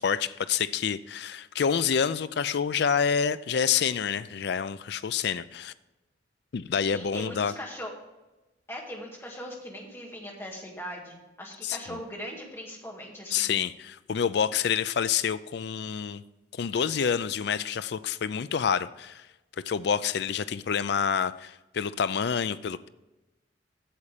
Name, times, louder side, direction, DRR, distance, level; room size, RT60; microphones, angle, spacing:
voice 1, 0.0-5.7 6.5-7.5 11.6-12.0 13.3-16.2 16.5-19.3 19.7-22.9, left 7 dB, 55° left, 15 dB, 0.4 m, -28 dB
voice 2, 6.9-7.9 8.7-13.5, equal, 10° left, -2 dB, 1.9 m, -40 dB
8.6 x 7.2 x 5.0 m, 1.0 s
head